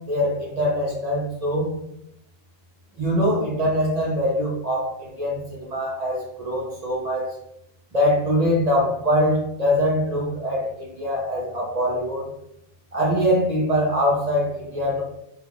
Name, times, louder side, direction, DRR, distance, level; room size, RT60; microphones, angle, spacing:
voice 1, 0.1-1.7 3.0-7.3 7.9-12.2 12.9-15.0, equal, 50° right, -2 dB, 0.5 m, -23 dB
3.2 x 2.3 x 3.4 m, 0.78 s
omnidirectional pair, 1.5 m